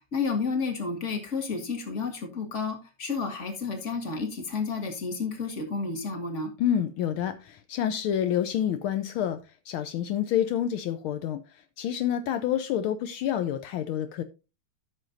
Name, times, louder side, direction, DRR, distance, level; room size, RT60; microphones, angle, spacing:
voice 1, 0.1-6.5, left 4 dB, 35° left, 5 dB, 1.9 m, -31 dB
voice 2, 6.6-9.4 9.7-11.4 11.8-14.2, left 10 dB, 75° left, 9 dB, 1.5 m, -28 dB
14.0 x 6.4 x 2.6 m, 0.28 s
omnidirectional pair, 2.4 m